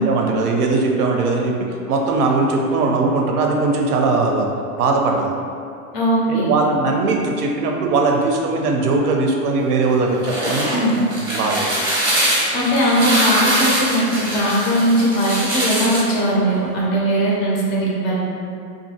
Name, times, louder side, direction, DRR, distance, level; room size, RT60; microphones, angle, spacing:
voice 1, 0.1-1.6 1.9-4.5 4.8-5.3 6.3-10.7 11.3-11.8, right 3 dB, 85° right, 1 dB, 0.6 m, -19 dB
voice 2, 5.9-6.5 10.7-11.0 12.5-18.2, equal, 30° left, -5 dB, 0.4 m, -19 dB
sound 1, 10.0-16.1, right 1 dB, 10° right, 0.6 m, -22 dB
2.6 x 2.4 x 2.7 m, 2.5 s
hypercardioid pair, 130°, 44 cm